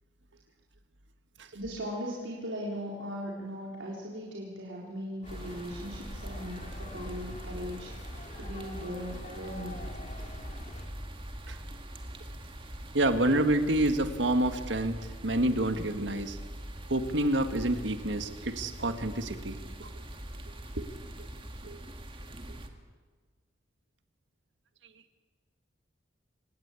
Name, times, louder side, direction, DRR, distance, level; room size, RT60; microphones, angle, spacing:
voice 1, 1.5-10.0, equal, 90° right, -4 dB, 4.0 m, -39 dB
sound 1, 5.2-10.9, left 1 dB, 40° left, 2.9 m, -45 dB
sound 2, 5.3-22.7, right 1 dB, 30° right, 2.2 m, -43 dB
voice 2, 12.9-16.4 16.9-19.9 20.8-20.9 21.6-21.8, right 1 dB, 70° right, 8 dB, 1.8 m, -28 dB
26.5 x 19.0 x 8.5 m, 1.5 s
head